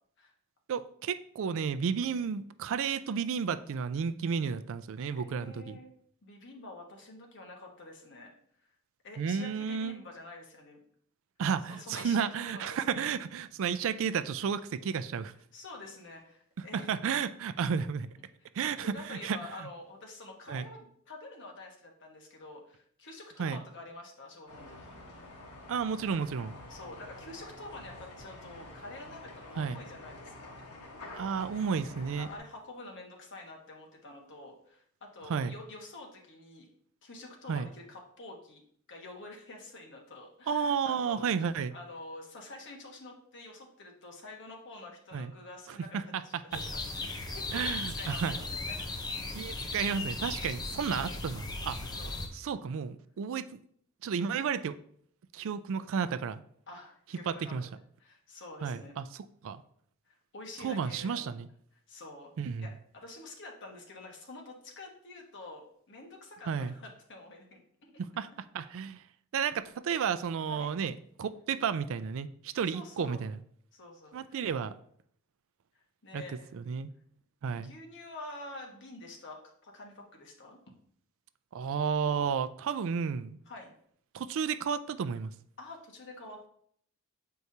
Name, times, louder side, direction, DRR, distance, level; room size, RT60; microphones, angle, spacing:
voice 1, 0.7-5.8 9.2-10.0 11.4-15.3 16.6-18.1 18.5-19.4 20.5-20.6 23.4-23.6 25.7-26.6 29.6-29.8 31.1-32.3 35.3-35.5 37.5-37.7 40.5-41.7 45.1-45.3 45.7-46.2 47.5-48.4 49.3-51.9 52.3-53.6 54.0-54.8 55.3-56.4 57.3-57.7 58.6-59.6 60.6-61.5 62.4-62.7 66.5-66.7 68.0-68.3 68.5-69.0 69.3-70.9 71.2-73.4 74.1-74.7 76.1-76.2 76.5-76.9 77.4-77.7 81.5-83.4 84.1-85.3, right 6 dB, 60° right, 13 dB, 0.4 m, -32 dB
voice 2, 5.2-5.9 6.2-8.3 8.6-8.7 9.0-10.8 11.7-13.0 15.5-17.0 18.4-25.0 26.7-30.6 32.2-36.7 37.0-38.6 38.9-41.3 41.7-48.9 49.4-49.6 51.0-51.2 52.0-52.2 56.7-57.7 58.0-58.9 60.1-61.4 61.9-62.3 62.6-67.6 68.6-68.8 70.5-70.7 72.7-73.2 73.7-74.5 76.0-76.5 77.5-80.6 83.5-83.7 85.6-86.5, left 2 dB, 55° left, 1 dB, 1.3 m, -48 dB
sound 1, 24.5-32.4, left 2 dB, 85° left, 1.4 m, -48 dB
sound 2, 46.5-52.3, left 2 dB, 20° left, 0.6 m, -37 dB
7.9 x 4.6 x 2.8 m, 0.64 s
head